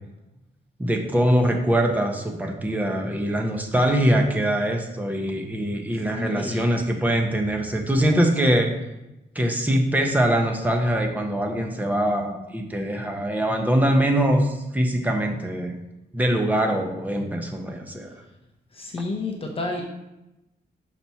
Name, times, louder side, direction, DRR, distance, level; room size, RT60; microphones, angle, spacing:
voice 1, 0.8-8.7 9.3-15.8 16.1-18.1, right 1 dB, 10° right, 2 dB, 0.7 m, -23 dB
voice 2, 6.1-6.7 18.7-19.8, left 2 dB, 30° left, 1 dB, 0.8 m, -30 dB
5.9 x 4.1 x 5.7 m, 0.95 s
wide cardioid pair, 170°, 18 cm